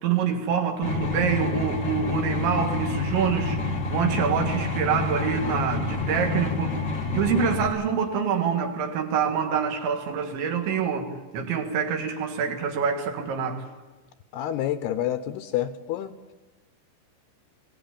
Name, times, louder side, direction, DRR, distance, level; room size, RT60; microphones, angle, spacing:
voice 1, 0.0-3.6 3.9-6.7 7.1-11.1 11.3-13.6, right 7 dB, 75° right, 4.3 m, -26 dB
sound 1, 0.8-7.7, left 3 dB, 45° left, 1.4 m, -28 dB
voice 2, 14.3-16.2, left 12 dB, 75° left, 2.4 m, -28 dB
22.5 x 17.5 x 8.7 m
omnidirectional pair, 5.4 m